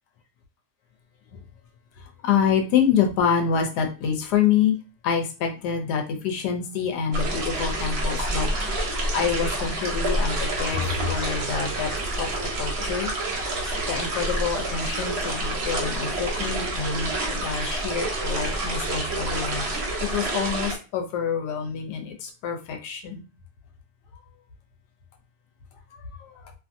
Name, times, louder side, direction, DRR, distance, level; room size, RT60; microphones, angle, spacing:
voice 1, 2.0-4.8 5.0-8.5 8.8-11.9 12.2-12.3 12.6-13.1 13.9-19.7 20.0-23.2 25.9-26.4, left 7 dB, 80° left, 3 dB, 1.1 m, -26 dB
Little Babbling Brook, 7.1-20.8, right 1 dB, 50° right, 0.9 m, -28 dB
2.7 x 2.5 x 2.5 m, 0.32 s
omnidirectional pair, 1.8 m